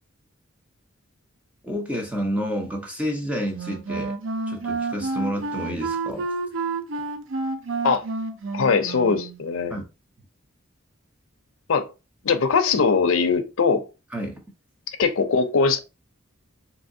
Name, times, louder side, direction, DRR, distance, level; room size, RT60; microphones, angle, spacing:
voice 1, 1.6-4.2 4.5-6.3 9.7-9.8 14.1-14.4, equal, 5° right, 0.7 m, -29 dB
Wind instrument woodwind instrument, 3.5-9.4, right 3 dB, 70° right, 0.5 m, -29 dB
voice 2, 8.5-9.8 11.7-11.9 12.2-13.8 15.0-15.8, left 5 dB, 80° left, 0.5 m, -21 dB
3.4 x 2.8 x 2.6 m
head